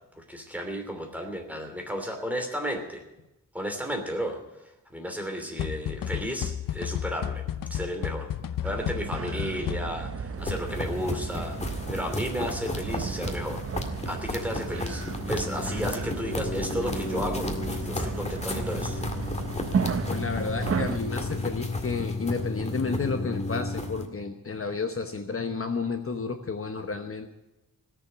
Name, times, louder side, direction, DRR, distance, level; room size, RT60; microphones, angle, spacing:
voice 1, 0.2-3.0 3.5-7.4 7.7-8.3 8.6-13.7 14.0-19.1, equal, 5° right, 4 dB, 2.9 m, -33 dB
sound 1, 5.6-10.2, left 9 dB, 80° left, 0.6 m, -32 dB
sound 2, 8.6-21.0, right 6 dB, 45° right, 0.8 m, -34 dB
sound 3, 10.4-24.1, left 2 dB, 20° left, 1.9 m, -32 dB
voice 2, 20.1-27.3, left 4 dB, 40° left, 6 dB, 1.1 m, -31 dB
17.5 x 7.1 x 9.8 m, 0.95 s
wide cardioid pair, 115°, 33 cm